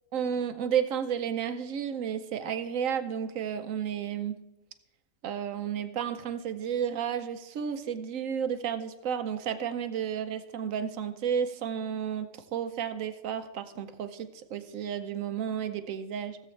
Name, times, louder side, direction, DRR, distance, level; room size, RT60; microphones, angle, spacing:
voice 1, 0.1-4.4 5.2-16.4, right 8 dB, 75° right, 10 dB, 1.1 m, -32 dB
16.5 x 7.7 x 3.2 m, 0.94 s
omnidirectional pair, 1.4 m